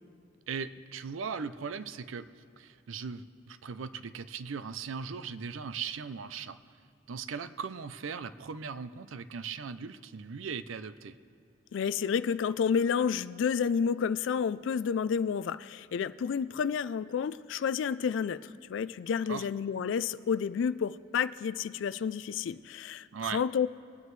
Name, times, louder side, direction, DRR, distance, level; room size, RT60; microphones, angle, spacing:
voice 1, 0.5-2.3 2.6-6.6 7.1-11.1 19.3-19.5 23.1-23.4, right 6 dB, 85° right, 13 dB, 0.5 m, -38 dB
voice 2, 11.7-23.7, left 7 dB, 70° left, 15 dB, 0.3 m, -30 dB
23.0 x 9.4 x 3.2 m, 2.5 s
head